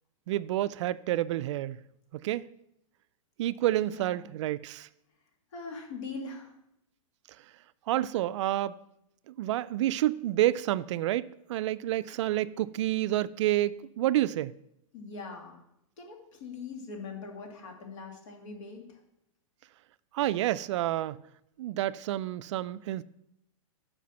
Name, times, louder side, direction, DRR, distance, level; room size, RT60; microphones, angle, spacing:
voice 1, 0.3-1.8 2.1-2.4 3.4-4.9 7.9-8.8 9.3-14.5 20.1-21.2 21.6-23.0, right 14 dB, 60° right, 0.4 m, -29 dB
voice 2, 3.9-4.2 5.5-6.5 14.9-15.6 16.0-18.8, left 4 dB, 65° left, 2.4 m, -41 dB
7.4 x 5.0 x 6.9 m
hypercardioid pair, 120°, 17 cm